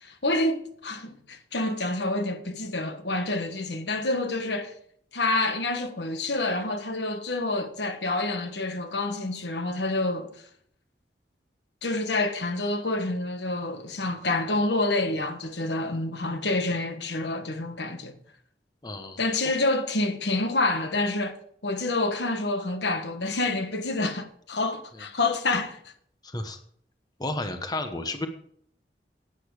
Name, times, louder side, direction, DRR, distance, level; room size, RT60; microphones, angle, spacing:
voice 1, 0.0-4.7 5.1-10.3 11.8-18.1 19.2-25.8, left 2 dB, 80° left, 1.4 m, -28 dB
voice 2, 18.8-19.2 24.9-25.0 26.2-26.6 27.2-28.3, left 2 dB, 25° left, 1.0 m, -32 dB
11.5 x 8.9 x 4.8 m
head